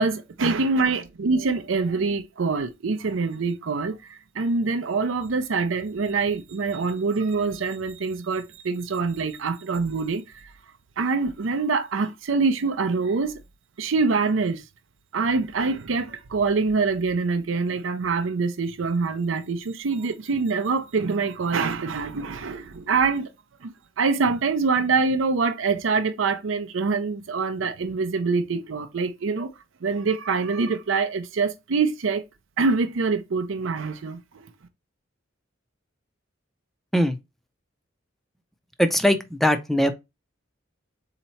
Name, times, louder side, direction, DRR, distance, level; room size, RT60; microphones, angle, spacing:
voice 1, 0.0-10.5 11.0-13.3 13.8-14.6 15.1-23.3 23.6-23.7 24.0-29.5 29.8-32.2 32.6-34.5, right 4 dB, 85° right, 0.5 m, -25 dB
voice 2, 38.8-39.9, equal, ahead, 0.4 m, -20 dB
4.0 x 2.9 x 4.3 m
head